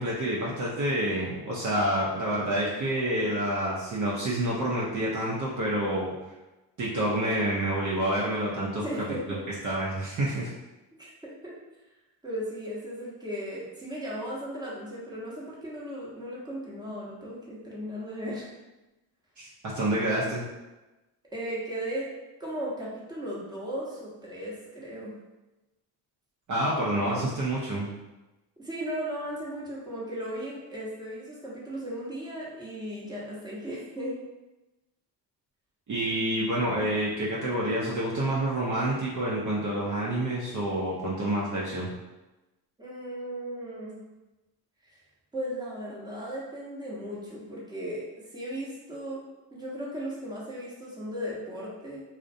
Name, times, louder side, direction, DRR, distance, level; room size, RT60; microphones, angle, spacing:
voice 1, 0.0-6.1 6.8-8.9 9.6-10.5 19.4-19.5 19.7-20.5 26.5-27.9 35.9-41.9, right 1 dB, 40° right, -6 dB, 0.6 m, -28 dB
voice 2, 8.8-9.4 11.0-11.1 11.4-11.5 12.2-18.5 21.3-22.1 22.4-25.1 27.0-27.3 28.6-34.1 42.8-44.0 44.9-45.0 45.3-48.0 48.3-49.2 49.5-52.0, equal, 10° right, -6 dB, 0.9 m, -36 dB
2.4 x 2.1 x 2.6 m, 1.1 s
supercardioid pair, 55°, 47 cm